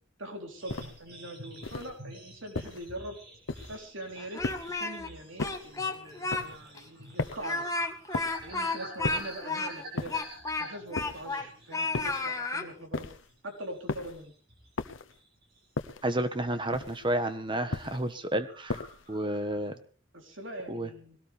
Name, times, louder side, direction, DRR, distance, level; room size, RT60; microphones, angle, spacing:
voice 1, 0.2-3.2 3.7-4.4 4.7-7.8 8.4-10.2 10.6-13.1 13.4-14.3 20.1-21.2, right 1 dB, 70° right, 3 dB, 3.8 m, -42 dB
sound 1, 0.6-12.3 12.6-12.9 13.3-14.8 15.1-15.9 16.4-16.6 16.9-17.3 17.6-17.7 17.9-18.0 18.3-19.7, right 1 dB, 50° right, 6.7 m, -49 dB
sound 2, 0.7-1.1 1.6-2.0 2.5-2.9 3.5-3.9 4.4-4.9 5.4-5.8 6.3-6.6 7.2-7.6 8.1-8.5 9.0-9.4 10.0-10.4 10.9-11.4 11.9-12.3 12.9-13.3 13.9-14.2 14.8-15.2 15.8-16.2 16.7-17.1 17.7-18.1 18.7-19.1, left 3 dB, 70° left, 1.0 m, -36 dB
Speech, 4.2-5.1 5.4-6.4 6.8-6.9 7.4-11.5 11.7-12.7, left 3 dB, 15° left, 1.5 m, -32 dB
voice 2, 16.0-18.8 19.1-19.8 20.7-20.9, right 1 dB, 25° right, 10 dB, 1.3 m, -31 dB
21.5 x 17.5 x 3.5 m, 0.37 s
head